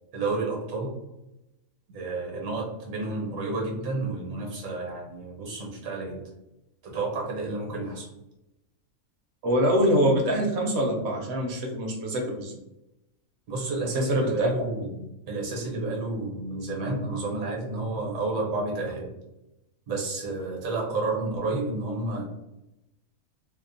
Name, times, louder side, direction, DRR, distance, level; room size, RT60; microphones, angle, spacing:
voice 1, 0.1-1.0 1.9-6.2 6.8-8.1 13.5-15.0 15.3-19.1 19.9-22.2, right 2 dB, 75° right, -1 dB, 1.2 m, -30 dB
voice 2, 9.4-12.5 13.9-14.5, equal, 60° right, 0 dB, 0.8 m, -24 dB
2.8 x 2.1 x 2.5 m, 0.92 s
omnidirectional pair, 1.5 m